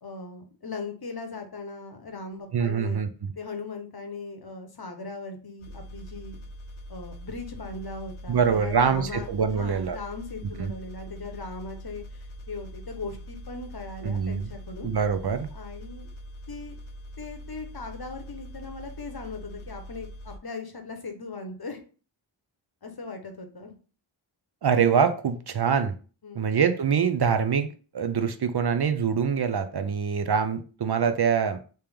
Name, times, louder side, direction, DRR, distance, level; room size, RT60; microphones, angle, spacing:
voice 1, 0.0-3.0 3.4-6.4 6.9-14.9 15.5-16.1 16.5-16.8 17.2-21.8 22.8-23.7 26.2-26.6, left 3 dB, 50° left, 0.8 m, -39 dB
voice 2, 2.5-3.3 8.3-10.0 10.6-10.7 14.0-14.5 14.8-15.5 24.6-25.9 26.3-27.7 27.9-31.6, right 6 dB, 55° right, 0.5 m, -24 dB
sound 1, 5.6-20.4, equal, 90° left, 0.7 m, -43 dB
3.3 x 2.9 x 3.4 m
wide cardioid pair, 40°, 48 cm